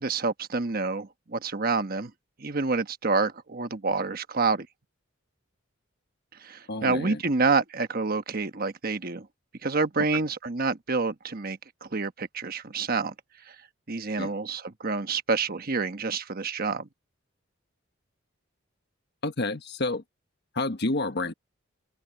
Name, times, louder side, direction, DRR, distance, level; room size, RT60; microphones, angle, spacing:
voice 1, 0.0-2.1 2.4-4.7 6.4-9.3 9.6-13.1 13.9-16.9, right 4 dB, 45° right, 1.2 m, -28 dB
voice 2, 6.7-7.2 14.2-14.3 19.2-20.0 20.5-21.3, left 2 dB, 55° left, 1.3 m, -29 dB
head